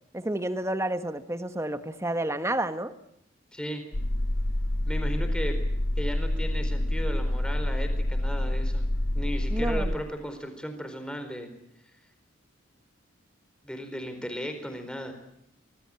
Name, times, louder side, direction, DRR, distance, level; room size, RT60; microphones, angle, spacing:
voice 1, 0.1-2.9 9.5-10.0, right 1 dB, 15° right, 10 dB, 1.4 m, -30 dB
voice 2, 3.5-3.8 4.9-5.6 6.0-8.8 9.1-11.5 13.6-15.1, equal, 5° left, 6 dB, 4.3 m, -35 dB
sound 1, 3.9-10.0, left 1 dB, 80° left, 1.5 m, -27 dB
26.0 x 19.5 x 8.9 m, 0.77 s
head